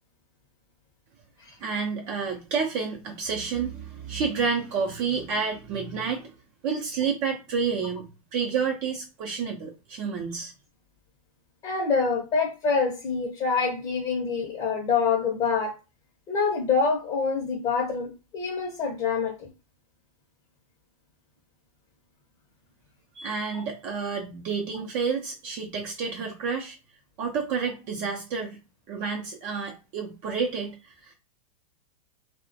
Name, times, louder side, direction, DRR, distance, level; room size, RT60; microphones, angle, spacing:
voice 1, 1.6-6.3 6.6-8.0 8.3-10.5 23.2-26.8 27.2-28.6 28.9-30.7 31.0-31.1, right 5 dB, 50° right, 0 dB, 0.5 m, -29 dB
voice 2, 11.6-15.7 16.3-19.5, left 5 dB, 30° left, 1 dB, 0.7 m, -26 dB
2.3 x 2.1 x 2.6 m, 0.30 s
hypercardioid pair, 115°, 18 cm